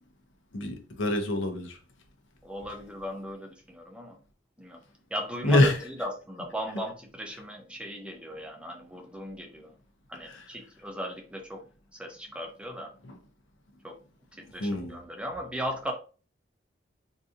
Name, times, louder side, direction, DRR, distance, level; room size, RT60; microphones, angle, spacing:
voice 1, 0.5-1.8 5.4-5.8 10.2-10.5 13.0-13.2 14.6-15.0, left 1 dB, 80° left, 0.7 m, -26 dB
voice 2, 2.4-4.2 4.6-4.8 5.1-5.7 6.0-9.8 10.1-11.6 11.9-12.9 13.8-14.0 14.3-15.9, equal, 5° right, 0.6 m, -37 dB
3.9 x 2.7 x 2.4 m
head